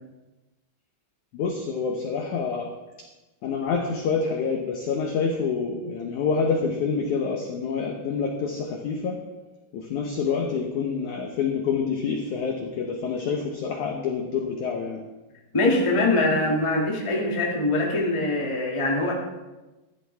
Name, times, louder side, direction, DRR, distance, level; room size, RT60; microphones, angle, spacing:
voice 1, 1.3-2.7 3.4-9.2 9.7-15.0, left 5 dB, 85° left, 2 dB, 1.7 m, -27 dB
voice 2, 15.5-19.1, left 2 dB, 25° left, -3 dB, 0.6 m, -23 dB
15.0 x 12.5 x 3.5 m, 1.1 s
omnidirectional pair, 5.0 m